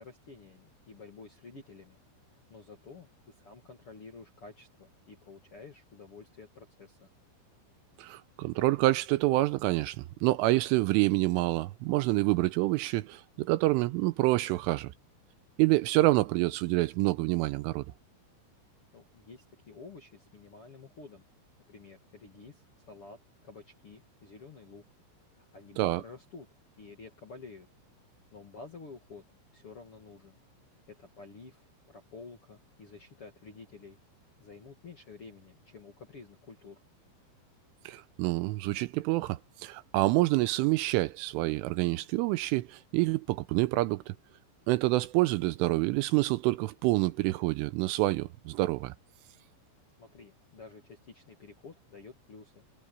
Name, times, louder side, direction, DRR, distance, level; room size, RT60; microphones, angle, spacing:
voice 1, 0.0-2.0 2.3-7.1 18.9-21.3 21.7-23.2 23.4-24.8 25.3-26.5 26.8-27.7 28.3-29.2 29.5-30.4 30.9-34.0 34.4-36.8 50.0-52.6, left 4 dB, 45° left, 1.9 m, -50 dB
voice 2, 8.0-14.9 15.6-17.9 25.8-26.0 37.9-44.1 44.7-48.9, right 19 dB, 85° right, 3.0 m, -27 dB
omnidirectional pair, 6.0 m